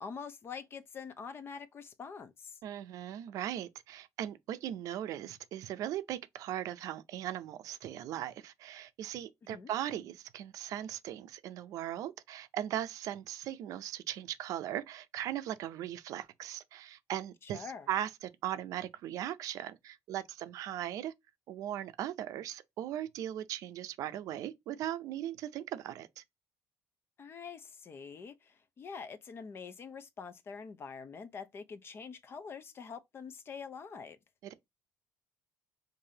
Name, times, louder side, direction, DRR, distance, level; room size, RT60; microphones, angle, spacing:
voice 1, 0.0-2.6 9.5-9.7 17.4-17.9 27.2-34.2, left 5 dB, 40° left, 0.6 m, -45 dB
voice 2, 2.6-21.1 21.5-26.2, right 11 dB, 75° right, 0.5 m, -38 dB
4.7 x 2.6 x 2.7 m
cardioid pair, 100°, 6 cm